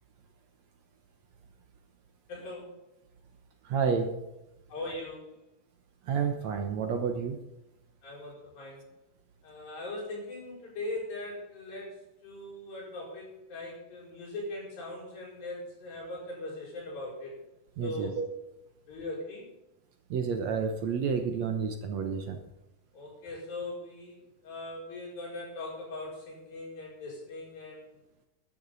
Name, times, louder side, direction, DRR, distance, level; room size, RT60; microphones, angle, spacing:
voice 1, 2.3-2.7 4.7-5.4 8.0-8.8 9.4-17.4 17.8-18.2 18.9-19.5 22.9-27.9, left 2 dB, 80° left, -3 dB, 6.9 m, -40 dB
voice 2, 3.6-4.2 6.0-7.4 17.8-18.3 20.1-22.4, right 6 dB, 65° right, 5 dB, 2.0 m, -30 dB
14.0 x 12.5 x 4.1 m, 0.93 s
omnidirectional pair, 4.0 m